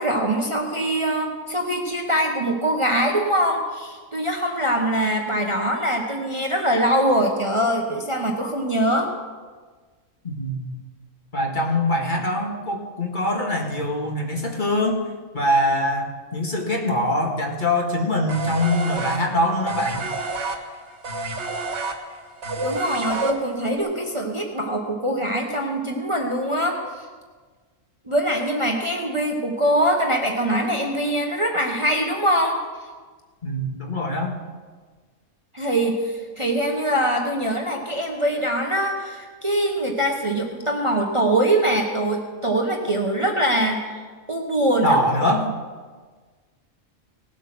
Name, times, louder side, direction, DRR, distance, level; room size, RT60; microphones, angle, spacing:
voice 1, 0.0-9.1 22.6-27.0 28.1-32.6 35.5-44.0 44.3-45.0, right 1 dB, 25° right, 1 dB, 1.1 m, -23 dB
voice 2, 10.2-10.7 11.3-15.0 15.3-20.0 33.4-34.3 44.8-45.5, left 1 dB, 40° left, 0 dB, 1.9 m, -23 dB
sound 1, 18.3-23.8, right 2 dB, 60° right, 1.7 m, -29 dB
18.0 x 8.1 x 6.1 m, 1.4 s
omnidirectional pair, 1.4 m